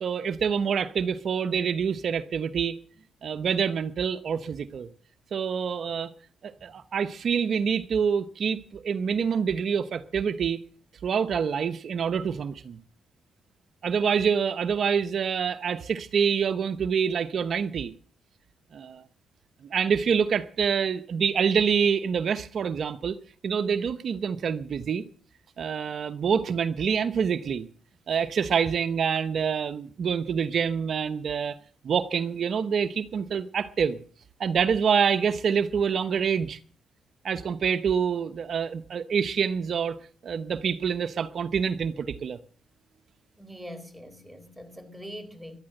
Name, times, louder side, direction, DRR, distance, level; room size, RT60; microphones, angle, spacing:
voice 1, 0.0-2.8 3.2-4.9 5.3-6.1 6.4-10.6 11.0-12.8 13.8-17.9 18.7-19.0 19.7-23.2 23.4-25.0 25.6-27.7 28.1-31.6 31.8-34.0 34.4-36.6 37.2-42.4, right 7 dB, 60° right, 0.9 m, -26 dB
voice 2, 43.4-45.6, equal, 10° right, 4.2 m, -42 dB
13.0 x 11.5 x 7.8 m
supercardioid pair, 65°, 0 cm